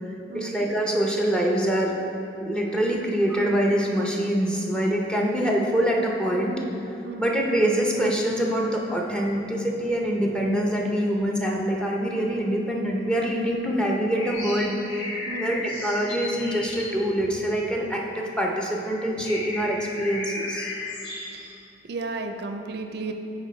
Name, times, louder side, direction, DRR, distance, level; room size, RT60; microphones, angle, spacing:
voice 1, 0.3-2.0 2.4-6.6 7.2-20.7, equal, 5° left, -1 dB, 0.6 m, -25 dB
sound 1, 14.2-18.1 18.6-18.7 19.0-21.5, left 2 dB, 80° left, 1.2 m, -35 dB
voice 2, 21.8-23.1, right 3 dB, 65° right, 6 dB, 0.4 m, -33 dB
9.5 x 4.1 x 3.1 m, 2.7 s
head